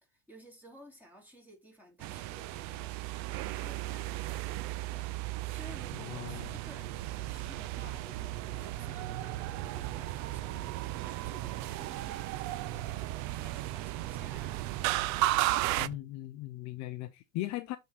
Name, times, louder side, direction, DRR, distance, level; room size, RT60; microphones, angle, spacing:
voice 1, 0.1-15.3, equal, 5° right, 3.1 m, -55 dB
sound 1, 2.0-15.9, right 16 dB, 45° right, 0.5 m, -35 dB
Fire, 5.7-16.0, right 12 dB, 70° right, 0.9 m, -44 dB
voice 2, 5.9-6.5 15.8-17.8, left 16 dB, 45° left, 0.6 m, -39 dB
8.2 x 3.8 x 4.1 m
supercardioid pair, 120°, 41 cm